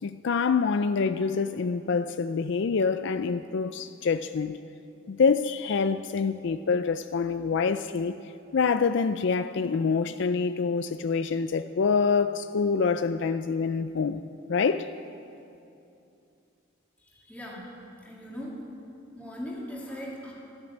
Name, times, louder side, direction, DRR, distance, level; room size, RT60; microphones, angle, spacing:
voice 1, 0.0-4.6 5.1-8.1 8.5-14.2 14.5-14.9, left 5 dB, 60° left, 0.4 m, -26 dB
voice 2, 17.1-17.6 18.0-18.6 19.1-20.3, equal, 5° left, 2.5 m, -39 dB
13.0 x 12.5 x 8.8 m
head